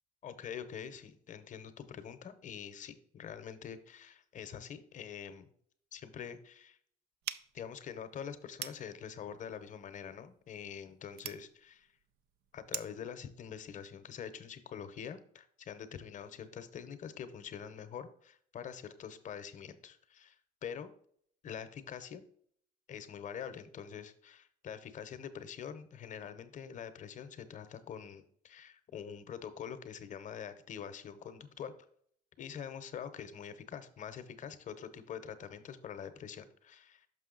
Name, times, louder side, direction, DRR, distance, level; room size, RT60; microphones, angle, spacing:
voice 1, 0.2-5.5 5.9-6.8 7.5-11.9 12.5-20.4 20.6-20.9 21.4-22.2 22.9-31.7 32.4-37.1, left 8 dB, 50° left, 10 dB, 0.8 m, -45 dB
sound 1, 7.2-13.1, right 11 dB, 75° right, 0.4 m, -46 dB
6.2 x 5.5 x 3.8 m, 0.63 s
cardioid pair, 110°, 17 cm